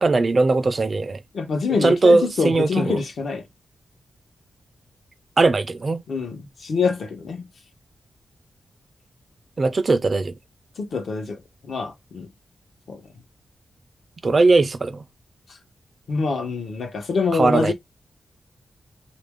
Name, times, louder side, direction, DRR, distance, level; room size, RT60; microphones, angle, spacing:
voice 1, 0.0-1.2 1.8-3.0 5.4-6.0 9.6-10.3 14.2-15.0 17.3-17.7, right 3 dB, 40° right, 0.4 m, -19 dB
voice 2, 1.3-3.4 6.1-7.5 10.8-11.4 11.6-12.3 12.9-13.0 16.1-17.7, left 4 dB, 70° left, 0.9 m, -25 dB
3.0 x 2.5 x 3.5 m
wide cardioid pair, 100°, 0 cm